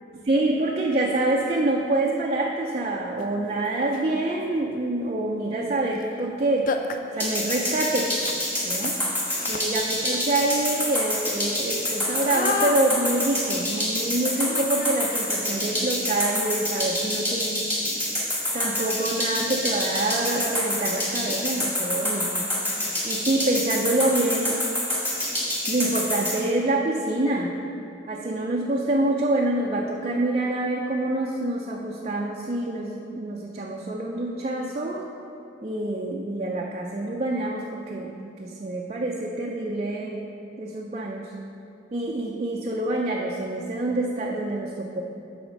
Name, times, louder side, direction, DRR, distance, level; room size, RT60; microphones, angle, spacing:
voice 1, 0.3-6.7 7.1-8.1 8.6-9.0 9.5-17.6 18.5-22.4 23.0-24.6 25.7-27.5 28.1-35.1 35.6-40.2 40.6-41.3 41.9-45.0, right 2 dB, 35° right, -1 dB, 0.4 m, -26 dB
sound 1, 3.2-3.3 3.8-4.2 5.9-6.1 6.3-6.4 6.7-15.5, left 4 dB, 45° left, 0.4 m, -35 dB
sound 2, 7.2-26.3, left 1 dB, 10° left, 1.7 m, -26 dB
8.1 x 4.3 x 6.2 m, 2.7 s
head